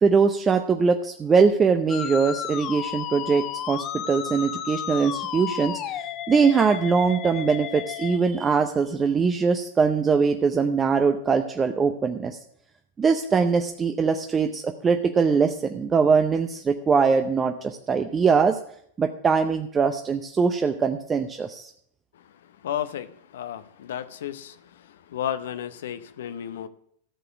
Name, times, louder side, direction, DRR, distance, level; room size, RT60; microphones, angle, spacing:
voice 1, 0.0-12.4 13.0-18.6 19.0-21.7, right 5 dB, 20° right, 6 dB, 0.7 m, -22 dB
Musical instrument, 1.9-8.2, left 10 dB, 40° left, 0.9 m, -33 dB
voice 2, 22.6-24.6 25.1-26.7, left 10 dB, 70° left, 11 dB, 0.7 m, -32 dB
13.5 x 6.8 x 6.0 m, 0.67 s
hypercardioid pair, 95°, 0 cm